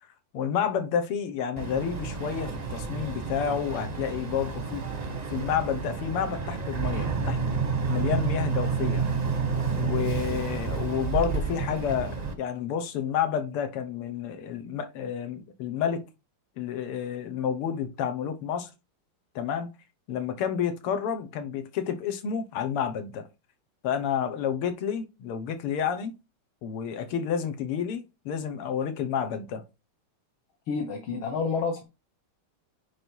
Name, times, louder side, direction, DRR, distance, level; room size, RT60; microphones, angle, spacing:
voice 1, 0.3-4.9 5.3-7.4 7.9-9.1 9.7-16.0 16.6-18.7 19.4-19.7 20.1-23.3 23.8-26.1 26.6-29.6, left 8 dB, 90° left, 2.0 m, -30 dB
Boat Water vehicle, 1.6-12.3, right 5 dB, 35° right, 0.6 m, -30 dB
voice 2, 30.7-31.8, left 5 dB, 70° left, 1.8 m, -29 dB
9.6 x 3.3 x 4.5 m
omnidirectional pair, 2.4 m